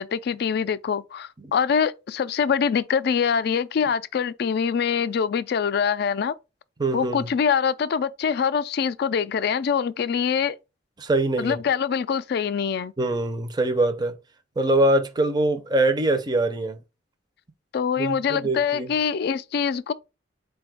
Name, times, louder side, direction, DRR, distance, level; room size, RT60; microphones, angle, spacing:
voice 1, 0.0-6.3 6.9-10.6 11.4-12.9 17.7-19.9, left 7 dB, 60° left, 0.3 m, -24 dB
voice 2, 6.8-7.3 11.0-11.6 13.0-14.1 14.6-16.8 18.0-18.9, right 2 dB, 20° right, 0.5 m, -23 dB
4.1 x 2.3 x 4.7 m
head